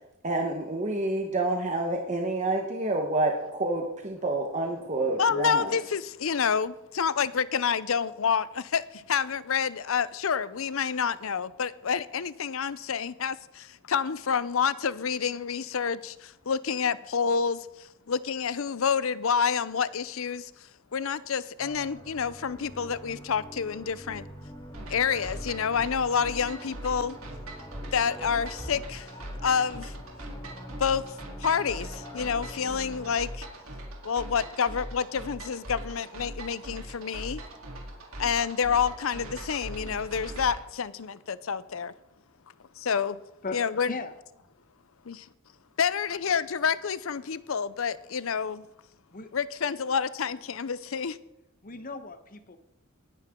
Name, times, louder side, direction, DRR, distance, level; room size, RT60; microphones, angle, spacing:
voice 1, 0.2-5.7, right 2 dB, 35° right, 1.2 m, -28 dB
voice 2, 5.1-20.5 20.9-24.2 24.9-27.2 27.9-29.1 29.4-30.0 30.8-31.0 31.4-33.5 34.0-37.4 38.2-41.9 42.8-43.2 43.5-43.9 45.1-45.3 45.8-48.7 49.3-51.2, left 6 dB, 70° left, 0.6 m, -28 dB
sound 1, 21.6-33.2, equal, 20° left, 3.2 m, -45 dB
sound 2, 24.7-40.6, right 1 dB, 85° right, 3.2 m, -41 dB
voice 3, 51.6-52.6, left 3 dB, 40° left, 1.0 m, -37 dB
19.0 x 9.9 x 3.7 m
head